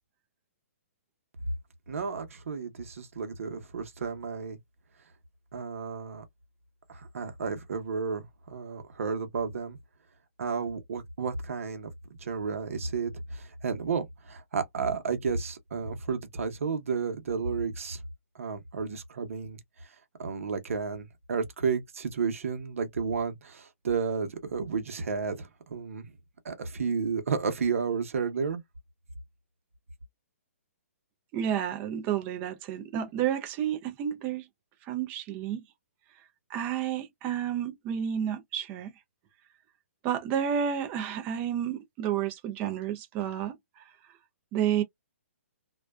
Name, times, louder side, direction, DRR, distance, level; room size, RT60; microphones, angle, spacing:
voice 1, 1.9-4.6 5.5-6.2 6.9-9.8 10.4-11.9 12.2-18.0 18.3-19.9 20.2-26.1 26.4-28.6, right 5 dB, 65° right, 0.9 m, -32 dB
voice 2, 31.3-34.5 34.9-35.6 36.5-38.9 40.0-43.8 44.5-44.8, right 9 dB, 20° right, 0.5 m, -30 dB
2.4 x 2.2 x 2.2 m
hypercardioid pair, 155°, 8 cm